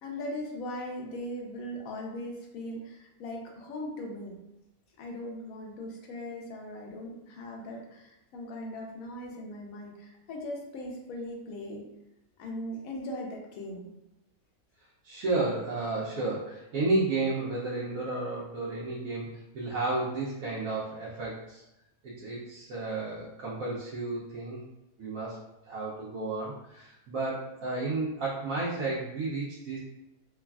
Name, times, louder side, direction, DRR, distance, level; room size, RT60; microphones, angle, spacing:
voice 1, 0.0-4.4 5.0-11.8 12.4-13.9, left 1 dB, 75° left, 0 dB, 1.0 m, -39 dB
voice 2, 15.0-21.6 22.0-24.7 25.0-25.4 25.6-29.8, right 2 dB, 75° right, -7 dB, 1.0 m, -32 dB
3.2 x 2.3 x 2.3 m, 0.88 s
omnidirectional pair, 1.5 m